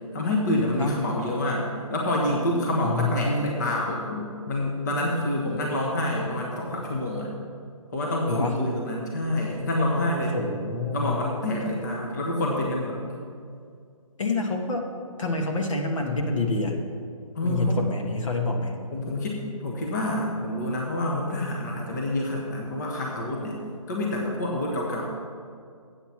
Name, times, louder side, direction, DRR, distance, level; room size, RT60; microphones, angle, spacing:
voice 1, 0.1-7.3 7.9-10.4 10.9-13.2 17.3-17.8 18.9-23.6 23.9-25.1, left 1 dB, 30° left, -2 dB, 1.1 m, -27 dB
voice 2, 2.8-3.5 8.3-8.6 10.3-11.1 14.2-14.9 15.2-16.8 17.4-18.7, left 2 dB, 60° left, 2 dB, 1.4 m, -27 dB
8.2 x 7.8 x 5.9 m, 2.3 s
hypercardioid pair, 170°, 18 cm